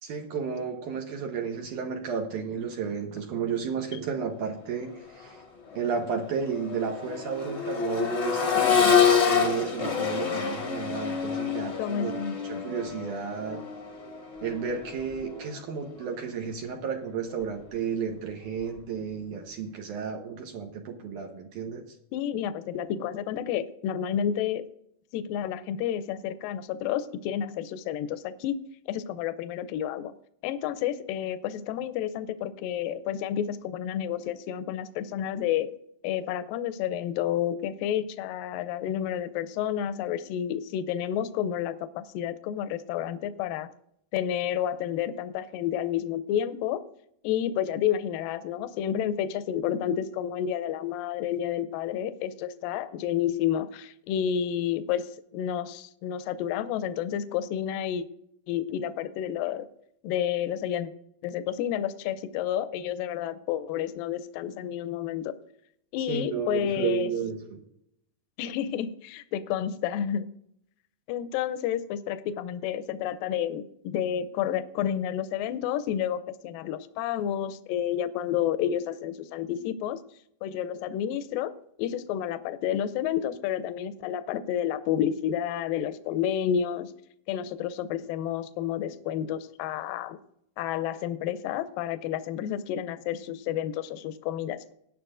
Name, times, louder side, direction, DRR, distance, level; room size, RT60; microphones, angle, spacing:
voice 1, 0.0-5.4 5.7-12.1 12.4-13.6 14.4-22.0 66.1-67.6, right 6 dB, 70° right, 2 dB, 2.3 m, -33 dB
Accelerating revving vroom, 5.1-5.2 5.7-15.6 17.3-17.4, left 6 dB, 45° left, 0.8 m, -27 dB
voice 2, 8.6-9.1 11.8-12.6 22.1-24.7 25.1-28.6 28.9-30.1 30.4-35.7 36.0-43.7 44.1-46.8 47.2-58.0 58.5-59.7 60.0-60.9 61.2-65.3 65.9-67.1 68.4-70.3 71.1-80.0 80.4-86.9 87.3-90.2 90.6-94.7, left 10 dB, 85° left, 11 dB, 2.3 m, -30 dB
18.5 x 10.0 x 2.5 m, 0.74 s
omnidirectional pair, 4.0 m